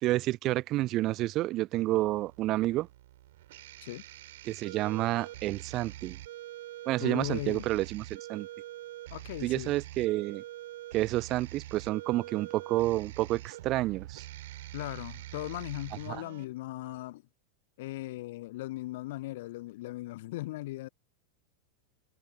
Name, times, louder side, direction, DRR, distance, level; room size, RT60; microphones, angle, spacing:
voice 1, 0.0-2.9 4.4-6.2 6.9-8.5 9.4-10.4 10.9-14.3 16.1-16.2, right 17 dB, 35° right, 0.6 m, -29 dB
sound 1, 1.9-16.4, right 15 dB, 55° right, 3.9 m, -45 dB
voice 2, 7.0-7.7 9.1-9.7 14.7-17.2 17.8-20.9, left 18 dB, 55° left, 0.8 m, -38 dB
figure-of-eight pair, 90°, 0 cm